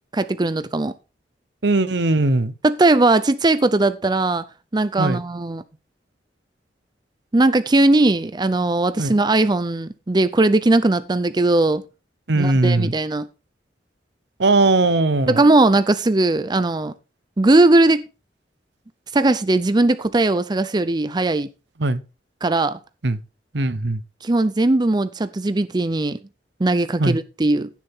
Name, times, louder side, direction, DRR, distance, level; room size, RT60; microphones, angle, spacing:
voice 1, 0.1-0.9 2.6-4.4 4.7-5.6 7.3-11.8 12.4-13.3 15.4-16.9 17.4-18.0 19.1-21.5 22.4-22.8 24.2-26.2 26.6-27.7, right 2 dB, 25° right, 0.5 m, -18 dB
voice 2, 1.6-2.5 5.0-5.2 9.0-9.2 12.3-12.9 14.4-15.4 21.8-22.0 23.0-23.2 23.5-24.0 27.0-27.2, right 2 dB, 70° right, 0.9 m, -19 dB
15.5 x 7.4 x 3.6 m
head